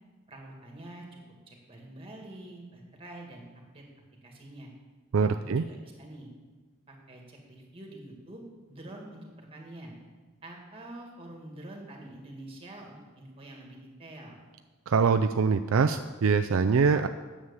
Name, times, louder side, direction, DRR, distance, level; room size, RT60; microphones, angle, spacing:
voice 1, 0.3-1.2 1.5-3.5 3.7-3.8 4.2-4.7 5.3-6.3 6.9-8.4 8.7-9.9 10.4-14.4, right 1 dB, 25° right, 1 dB, 2.0 m, -46 dB
voice 2, 5.1-5.6 14.9-17.1, right 5 dB, 65° right, 8 dB, 0.4 m, -24 dB
9.7 x 7.4 x 7.0 m, 1.3 s
head